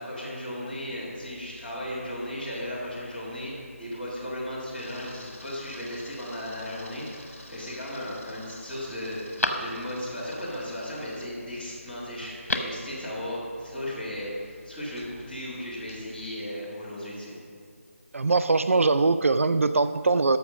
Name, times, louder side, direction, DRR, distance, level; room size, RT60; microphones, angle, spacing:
voice 1, 0.0-17.4, left 1 dB, ahead, -14 dB, 1.8 m, -36 dB
Camera, 0.7-16.3, left 2 dB, 70° left, 2.5 m, -51 dB
Telephone, 7.1-7.7 8.2-8.3 8.7-10.2 12.2-12.9 13.2-13.3, left 2 dB, 85° left, 1.2 m, -33 dB
voice 2, 18.1-20.4, right 3 dB, 65° right, 12 dB, 0.4 m, -22 dB
13.5 x 5.8 x 6.2 m, 2.3 s
figure-of-eight pair, 170°, 8 cm